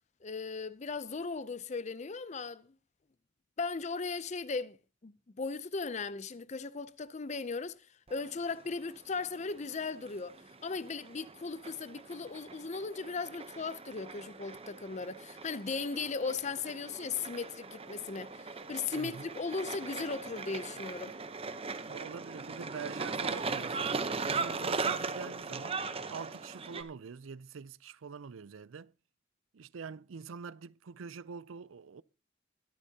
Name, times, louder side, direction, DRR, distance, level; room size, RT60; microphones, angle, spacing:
voice 1, 0.2-2.7 3.6-4.8 5.0-10.3 10.6-21.2, left 4 dB, 35° left, 0.5 m, -37 dB
sound 1, 8.1-26.8, right 4 dB, 30° right, 0.8 m, -39 dB
voice 2, 19.0-19.3 21.9-24.0 24.3-25.8 26.1-28.9 29.5-32.0, right 5 dB, 85° right, 0.5 m, -45 dB
22.0 x 8.6 x 2.8 m
head